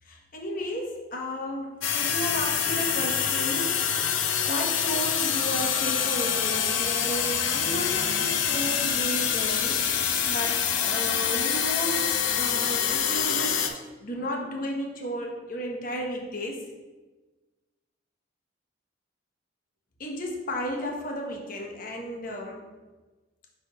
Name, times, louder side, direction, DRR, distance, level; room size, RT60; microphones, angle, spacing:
voice 1, 0.0-16.6 20.0-22.6, equal, 45° left, 0 dB, 1.0 m, -34 dB
sound 1, 1.8-13.7, left 8 dB, 90° left, 0.6 m, -26 dB
10.0 x 3.4 x 3.0 m, 1.2 s
head